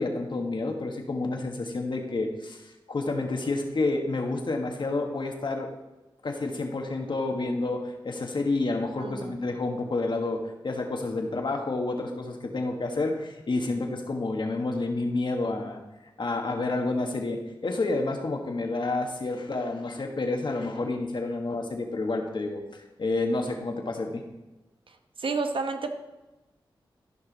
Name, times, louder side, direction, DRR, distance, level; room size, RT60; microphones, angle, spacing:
voice 1, 0.0-5.7 6.2-15.8 16.2-22.6 23.0-24.2, left 2 dB, 60° left, 3 dB, 1.5 m, -29 dB
voice 2, 9.0-9.4 24.9-25.9, right 4 dB, 70° right, 6 dB, 1.0 m, -31 dB
14.0 x 5.5 x 4.1 m, 1.1 s
cardioid pair, 50°, 9 cm